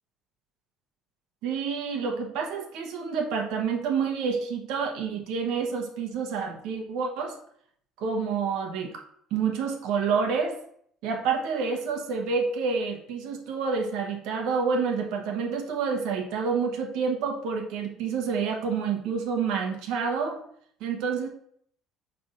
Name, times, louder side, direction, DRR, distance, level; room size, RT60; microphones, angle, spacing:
voice 1, 1.4-7.3 8.0-9.0 9.3-10.6 11.0-20.4 20.8-21.3, right 5 dB, 70° right, 2 dB, 1.1 m, -28 dB
5.4 x 3.4 x 5.3 m, 0.65 s
cardioid pair, 175°, 0 cm